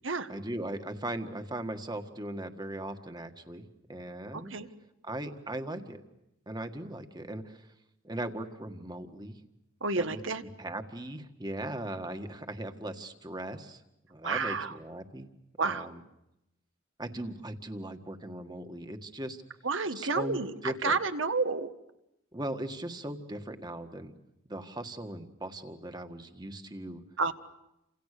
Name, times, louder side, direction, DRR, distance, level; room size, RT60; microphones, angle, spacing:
voice 1, 0.3-4.5 5.0-6.0 6.5-7.7 8.0-9.4 10.0-10.2 10.6-13.8 14.1-15.3 15.6-16.0 17.0-19.4 19.9-21.0 22.3-24.1 24.5-27.0, right 1 dB, 20° right, 7 dB, 1.8 m, -39 dB
voice 2, 4.3-4.7 9.8-10.4 14.2-14.7 15.6-15.9 19.6-21.7 27.2-27.3, right 4 dB, 70° right, 9 dB, 1.6 m, -30 dB
30.0 x 27.0 x 6.8 m, 0.86 s
head